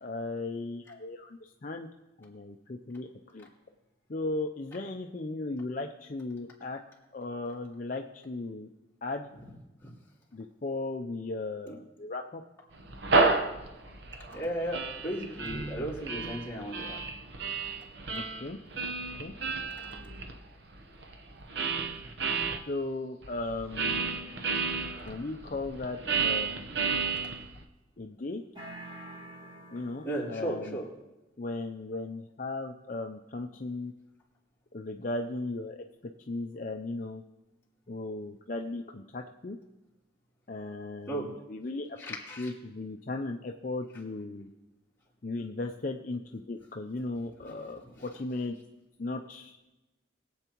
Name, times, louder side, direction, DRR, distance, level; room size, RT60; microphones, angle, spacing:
voice 1, 0.0-1.9 2.2-3.5 4.1-6.8 7.1-8.7 9.0-9.3 10.3-12.4 18.1-18.6 19.2-19.3 22.7-24.2 25.1-26.7 28.0-28.4 29.7-30.8 31.4-33.9 34.7-35.8 36.3-37.2 37.9-39.6 40.5-42.0 42.4-44.5 45.2-48.6 49.0-49.6, left 2 dB, 45° left, 3 dB, 0.5 m, -36 dB
sound 1, 12.8-22.6 23.2-27.6, right 4 dB, 65° right, 0.9 m, -32 dB
voice 2, 14.3-17.0 30.0-30.9 41.1-41.3 42.0-42.5 47.4-47.9, right 1 dB, 15° left, -6 dB, 2.9 m, -35 dB
sound 2, 28.6-30.5, right 1 dB, 25° right, 2.6 m, -46 dB
21.5 x 8.0 x 3.0 m, 1.0 s
head